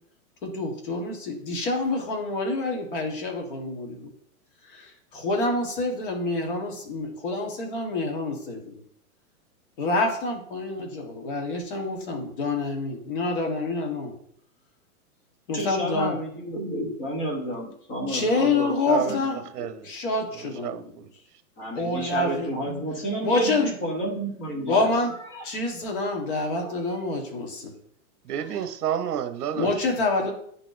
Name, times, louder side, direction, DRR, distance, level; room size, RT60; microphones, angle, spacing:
voice 1, 0.4-4.1 4.7-8.6 9.8-14.1 15.5-16.1 18.1-19.5 19.8-20.8 21.7-22.5 23.2-23.7 24.7-25.1 25.4-27.7 29.5-30.3, left 2 dB, 35° left, 1 dB, 1.3 m, -27 dB
voice 2, 15.5-19.2 19.6-19.7 21.6-25.5 26.6-26.7, right 1 dB, 15° left, -1 dB, 0.7 m, -31 dB
voice 3, 18.9-19.2 19.5-19.9 20.6-21.1 28.3-29.7, right 9 dB, 85° right, 10 dB, 0.8 m, -29 dB
9.8 x 4.0 x 2.5 m, 0.65 s
hypercardioid pair, 170°, 45 cm